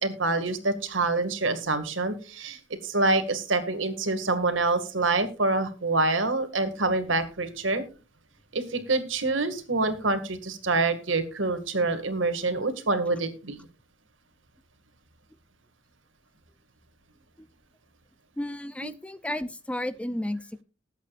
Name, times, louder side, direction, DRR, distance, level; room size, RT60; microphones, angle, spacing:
voice 1, 0.0-7.8 8.5-13.6, right 3 dB, 75° right, 8 dB, 2.1 m, -26 dB
voice 2, 18.4-20.6, left 1 dB, 5° left, 14 dB, 0.5 m, -33 dB
20.5 x 8.3 x 2.5 m, 0.33 s
head